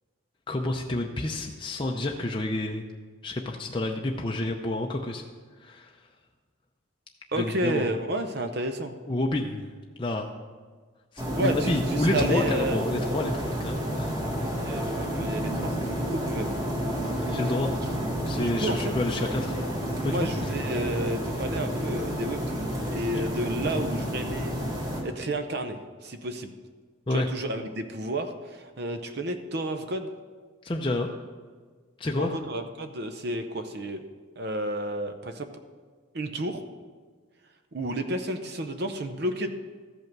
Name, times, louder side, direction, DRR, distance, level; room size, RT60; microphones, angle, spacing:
voice 1, 0.5-2.9 3.2-5.2 5.6-5.9 7.4-7.9 9.1-9.7 10.0-10.3 11.1-14.2 17.3-17.7 18.2-19.6 20.0-20.3 23.1-23.3 27.1-27.3 30.6-31.1 32.0-32.4, left 2 dB, 25° left, 2 dB, 0.5 m, -29 dB
voice 2, 7.3-8.9 11.4-12.8 14.6-16.5 17.2-17.7 18.3-18.9 20.0-24.5 25.0-26.5 27.1-30.1 32.2-34.0 34.4-35.5 36.1-36.6 37.7-39.5, right 1 dB, 50° right, 8 dB, 0.7 m, -31 dB
sound 1, 11.2-25.0, equal, 15° right, 1.6 m, -30 dB
14.0 x 5.5 x 6.0 m, 1.5 s
head